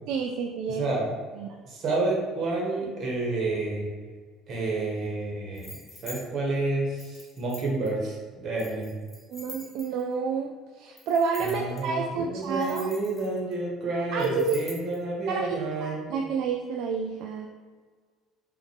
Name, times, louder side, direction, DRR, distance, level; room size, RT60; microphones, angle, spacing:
voice 1, 0.1-0.8 1.4-1.5 9.3-12.9 14.1-14.6 15.3-17.5, right 5 dB, 65° right, 2 dB, 0.3 m, -29 dB
voice 2, 0.7-1.1 1.6-3.9 4.5-8.9 11.4-16.1, right 2 dB, 45° right, -3 dB, 1.4 m, -30 dB
sound 1, 5.5-6.2 7.0-7.9 8.6-10.1 11.0-11.8 12.4-13.5 14.2-15.0, left 2 dB, 20° left, 1.0 m, -45 dB
5.0 x 2.6 x 3.3 m, 1.5 s
cardioid pair, 125°, 0 cm